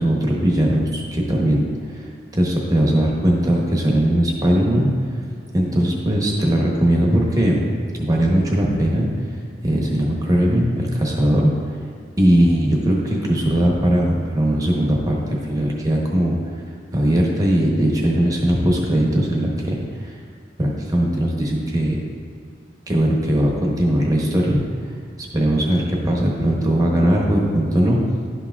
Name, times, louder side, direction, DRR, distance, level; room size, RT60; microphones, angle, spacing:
voice 1, 0.0-1.6 1.9-4.9 5.5-7.6 8.0-9.1 9.6-11.5 12.2-16.4 16.9-20.1 20.6-22.0 22.9-24.6 25.2-28.0, right 1 dB, 20° right, -2 dB, 0.9 m, -19 dB
11.0 x 5.8 x 2.4 m, 2.2 s
head